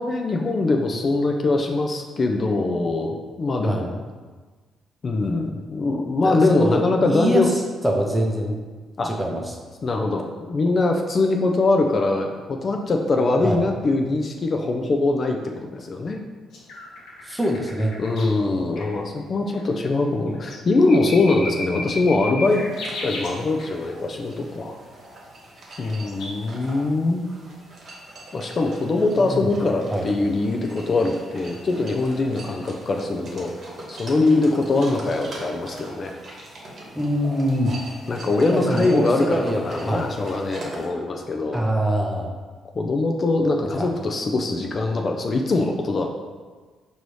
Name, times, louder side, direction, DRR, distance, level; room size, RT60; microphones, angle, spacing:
voice 1, 0.0-3.9 5.0-7.5 9.0-9.1 9.8-16.2 18.0-22.6 23.0-24.8 25.8-27.2 28.3-33.5 33.9-36.4 38.1-41.6 42.7-46.1, left 2 dB, 40° left, 3 dB, 0.3 m, -22 dB
voice 2, 6.2-6.8 7.1-7.4 7.8-8.6 9.0-9.4 13.4-13.6 17.2-18.0 29.2-29.5 29.9-30.1 36.9-37.7 38.5-40.1 41.5-42.3 43.8-43.9, equal, 5° right, 1 dB, 0.6 m, -24 dB
sound 1, 16.5-18.4 18.8-18.9 19.5-19.6 20.3-23.7 25.8-26.3, left 2 dB, 80° left, 0.9 m, -34 dB
sound 2, 22.4-40.9, right 1 dB, 50° right, 1.0 m, -41 dB
4.7 x 2.7 x 3.1 m, 1.4 s
cardioid pair, 90°, 0 cm